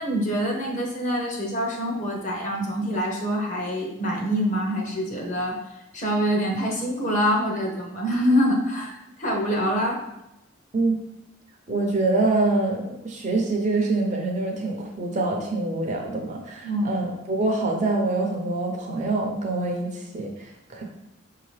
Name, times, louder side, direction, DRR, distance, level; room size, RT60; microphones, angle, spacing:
voice 1, 0.0-5.6 5.9-10.0 16.6-16.9, equal, 35° left, 0 dB, 0.8 m, -25 dB
voice 2, 11.7-20.8, right 2 dB, 35° right, 1 dB, 0.6 m, -25 dB
5.8 x 2.8 x 3.2 m, 0.91 s
head